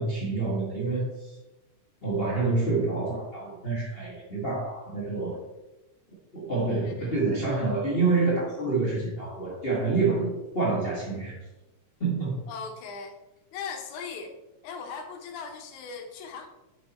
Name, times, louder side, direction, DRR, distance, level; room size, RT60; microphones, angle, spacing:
voice 1, 0.0-1.4 2.0-5.4 6.3-11.4 12.0-12.4, right 3 dB, 35° left, -6 dB, 1.0 m, -27 dB
voice 2, 12.5-13.2 13.5-14.4 14.6-16.5, left 5 dB, 85° left, 4 dB, 2.3 m, -38 dB
6.0 x 5.9 x 4.1 m, 1.0 s
omnidirectional pair, 3.4 m